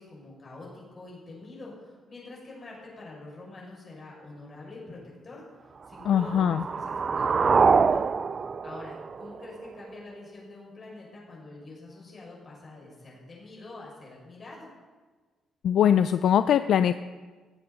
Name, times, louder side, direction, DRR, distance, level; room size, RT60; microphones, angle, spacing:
voice 1, 0.0-8.0 8.6-14.7, left 2 dB, 30° left, -4 dB, 6.2 m, -45 dB
sound 1, 5.9-9.9, right 5 dB, 30° right, 0.3 m, -25 dB
voice 2, 6.1-6.6 15.6-16.9, left 9 dB, 60° left, 12 dB, 0.4 m, -21 dB
18.0 x 15.0 x 4.0 m, 1.4 s
cardioid pair, 160°, 0 cm